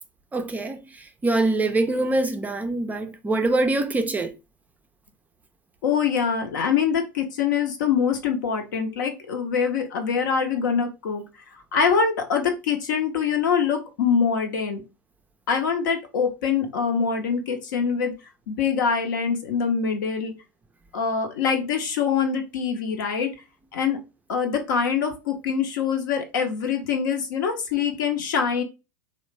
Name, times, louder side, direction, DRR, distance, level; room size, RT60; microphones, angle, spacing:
voice 1, 0.3-4.3, right 2 dB, 15° right, 0.4 m, -24 dB
voice 2, 5.8-11.2 11.7-14.8 15.5-18.1 18.5-20.3 20.9-23.3 23.7-24.0 24.3-28.6, left 6 dB, 65° left, 0.8 m, -24 dB
3.2 x 2.1 x 3.1 m
hypercardioid pair, 90°, 11 cm